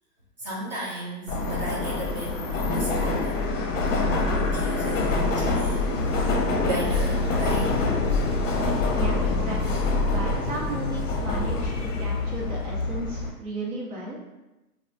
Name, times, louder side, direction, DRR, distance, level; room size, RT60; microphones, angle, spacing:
voice 1, 0.4-3.4 3.8-6.2 6.6-7.8, right 1 dB, 30° right, -5 dB, 0.4 m, -35 dB
Subway metro underground, 1.3-13.3, left 3 dB, 50° left, 0.5 m, -25 dB
voice 2, 8.9-14.2, right 2 dB, 60° right, -4 dB, 1.1 m, -35 dB
2.8 x 2.4 x 2.4 m, 0.99 s
hypercardioid pair, 145°, 50 cm